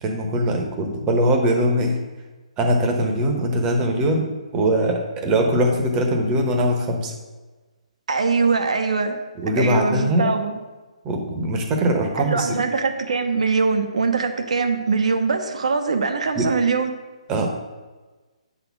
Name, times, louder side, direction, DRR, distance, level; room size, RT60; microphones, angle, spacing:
voice 1, 0.0-2.0 2.6-4.3 4.5-7.1 9.4-10.3 11.0-12.6 16.4-16.5 17.3-17.5, right 1 dB, 20° right, 3 dB, 1.0 m, -21 dB
voice 2, 8.1-9.2 9.6-10.6 12.2-17.0, right 4 dB, 70° right, 6 dB, 1.0 m, -22 dB
7.6 x 4.2 x 5.9 m, 1.3 s
hypercardioid pair, 155°, 4 cm